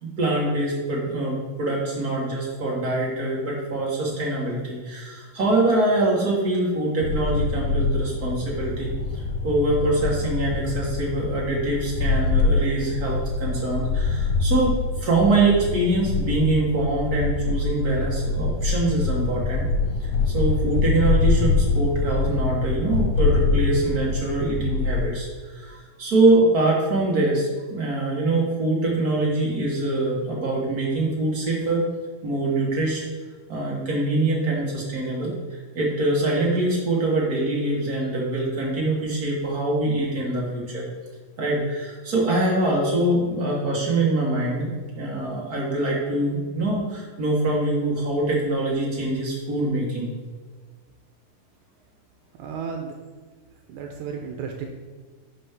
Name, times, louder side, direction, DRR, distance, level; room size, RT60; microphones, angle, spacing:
voice 1, 0.0-8.9 9.4-14.7 15.0-19.6 20.0-31.8 32.2-33.0 33.5-40.9 41.4-50.1, right 2 dB, 65° right, -3 dB, 0.9 m, -24 dB
sound 1, 7.0-25.1, left 3 dB, 75° left, 2.2 m, -24 dB
voice 2, 52.4-52.9 53.7-54.7, right 6 dB, 80° right, 2 dB, 2.2 m, -33 dB
11.0 x 5.2 x 3.6 m, 1.4 s
omnidirectional pair, 4.0 m